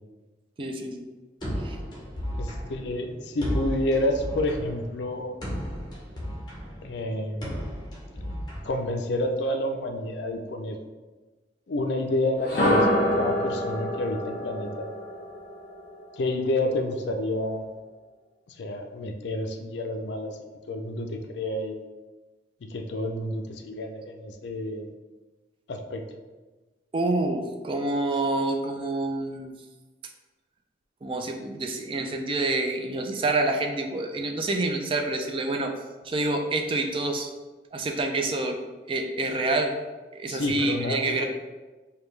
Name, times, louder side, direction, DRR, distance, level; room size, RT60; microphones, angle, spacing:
voice 1, 0.6-1.1 1.6-1.8 26.9-29.6 31.0-35.7 36.0-37.3 37.7-38.6 38.9-39.7 40.1-41.2, right 2 dB, 30° right, 4 dB, 0.3 m, -27 dB
sound 1, 1.4-9.3, equal, 25° left, 1.0 m, -34 dB
voice 2, 2.3-5.4 6.8-7.5 8.7-10.8 11.7-14.9 16.1-17.7 18.5-20.4 20.7-21.8 22.7-24.9 25.7-26.0 40.3-41.2, left 1 dB, 70° left, 5 dB, 0.4 m, -29 dB
sound 2, 12.4-16.3, left 1 dB, 50° left, 1.0 m, -26 dB
5.1 x 2.2 x 3.2 m, 1.3 s
head